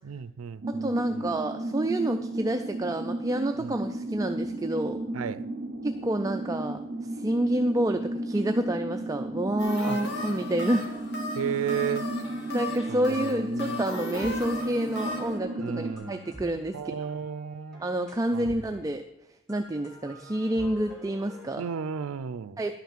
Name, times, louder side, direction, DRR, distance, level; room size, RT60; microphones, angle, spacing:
voice 1, 0.0-1.3 3.6-3.7 5.1-5.4 9.8-10.0 11.3-12.1 12.9-13.8 15.6-16.3 16.7-17.8 18.3-18.5 21.6-22.6, right 8 dB, 90° right, 15 dB, 0.4 m, -34 dB
sound 1, 0.6-15.9, right 1 dB, 50° right, 0.7 m, -34 dB
voice 2, 0.7-5.0 5.8-11.1 12.5-17.1 17.8-19.0 19.5-21.6 22.6-22.8, right 1 dB, 15° right, 6 dB, 0.4 m, -29 dB
sound 2, 9.6-15.4, left 2 dB, 55° left, 1.7 m, -37 dB
sound 3, 12.6-13.4 13.7-19.0 19.5-21.5, right 1 dB, ahead, 2.6 m, -48 dB
11.5 x 5.9 x 7.3 m, 0.90 s
head